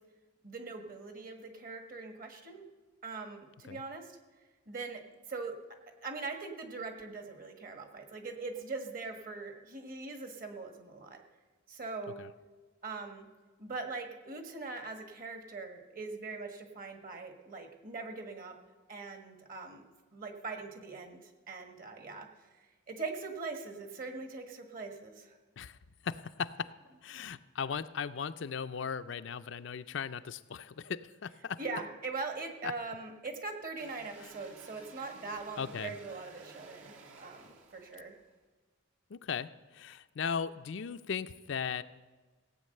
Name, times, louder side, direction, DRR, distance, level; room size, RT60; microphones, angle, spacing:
voice 1, 0.4-2.6 3.0-4.2 4.7-5.0 5.3-5.5 6.0-11.2 11.7-12.2 12.8-13.3 13.6-18.5 18.9-19.8 20.1-22.3 22.9-25.4 31.6-38.1, right 3 dB, 45° right, 5 dB, 1.6 m, -41 dB
voice 2, 26.0-26.7 27.0-31.6 32.6-32.7 35.6-35.9 39.1-41.8, left 6 dB, 60° left, 11 dB, 0.4 m, -37 dB
sound 1, 33.8-38.3, right 3 dB, 70° right, 1.8 m, -54 dB
16.5 x 8.5 x 6.6 m, 1.3 s
head